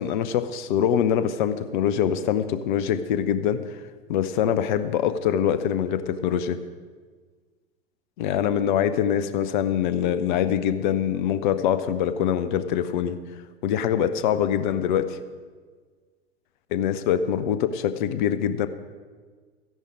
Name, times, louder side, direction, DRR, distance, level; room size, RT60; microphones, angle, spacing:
voice 1, 0.0-3.8 4.1-6.6 8.2-13.2 13.6-15.2 16.7-18.7, left 9 dB, 50° left, 13 dB, 0.8 m, -24 dB
13.5 x 10.5 x 4.9 m, 1.5 s
figure-of-eight pair, 85°, 32 cm